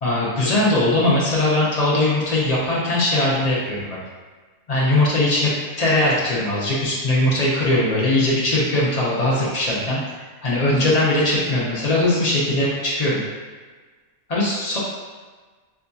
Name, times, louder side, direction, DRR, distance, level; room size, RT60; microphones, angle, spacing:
voice 1, 0.0-4.0 4.7-5.5 5.8-10.0 10.4-13.2 14.3-14.8, left 1 dB, 60° left, -6 dB, 0.4 m, -20 dB
4.5 x 2.6 x 2.3 m, 1.4 s
omnidirectional pair, 1.6 m